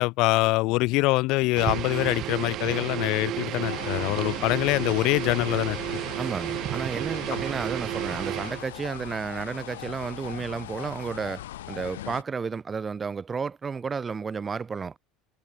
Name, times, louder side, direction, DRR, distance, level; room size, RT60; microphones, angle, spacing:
voice 1, 0.0-5.8 7.3-7.4, left 22 dB, 65° left, 0.4 m, -24 dB
sound 1, 1.6-8.6, right 14 dB, 55° right, 1.3 m, -32 dB
sound 2, 3.6-12.2, left 14 dB, 80° left, 2.1 m, -40 dB
voice 2, 6.2-11.4 11.7-15.0, right 5 dB, 25° right, 0.9 m, -32 dB
hypercardioid pair, 75°, 0 cm